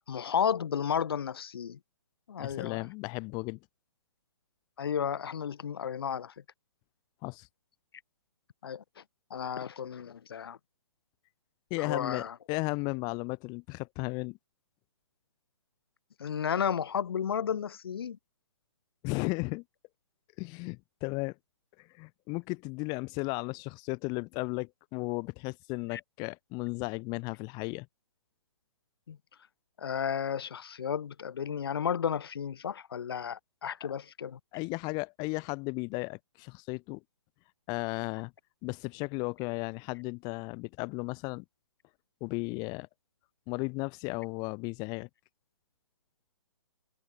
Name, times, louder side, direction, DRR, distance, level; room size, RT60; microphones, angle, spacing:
voice 1, 0.1-1.8 2.3-2.8 4.8-6.3 8.6-9.0 9.3-10.6 11.8-12.3 16.2-18.2 25.9-26.0 29.1-29.2 29.8-34.4, left 8 dB, 55° left, 3.5 m, -33 dB
voice 2, 2.4-3.6 7.2-7.5 11.7-14.4 19.0-19.6 20.4-21.3 21.8-27.9 34.5-37.0 37.7-38.3 38.6-41.4 42.2-42.9 43.5-45.1, left 29 dB, 25° left, 3.7 m, -35 dB
figure-of-eight pair, 125°, 15 cm